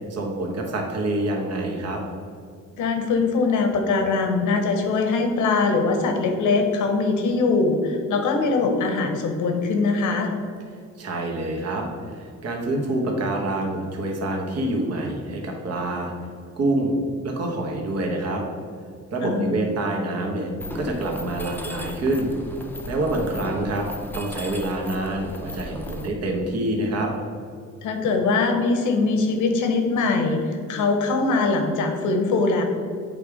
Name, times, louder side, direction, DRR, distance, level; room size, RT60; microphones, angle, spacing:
voice 1, 0.1-2.0 11.0-16.1 16.6-16.9 17.2-18.4 19.1-20.5 20.7-22.3 22.9-23.9 24.1-27.1, right 2 dB, 55° right, 1 dB, 1.3 m, -26 dB
voice 2, 2.8-10.3 19.2-19.6 27.8-32.6, left 3 dB, 80° left, 5 dB, 1.1 m, -22 dB
Mechanisms, 20.6-26.1, left 1 dB, 5° left, 0.6 m, -36 dB
7.8 x 3.5 x 4.9 m, 2.3 s
cardioid pair, 90°, 30 cm